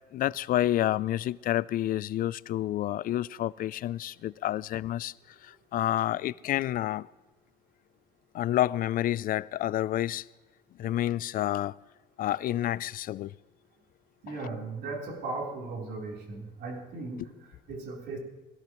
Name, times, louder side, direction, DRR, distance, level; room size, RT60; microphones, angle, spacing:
voice 1, 0.1-5.1 5.4-7.1 8.3-10.2 10.8-11.7 12.2-13.3, left 13 dB, 55° left, 0.4 m, -29 dB
voice 2, 14.2-18.2, right 3 dB, 75° right, 3.8 m, -37 dB
21.5 x 17.0 x 3.1 m
cardioid pair, 110°, 17 cm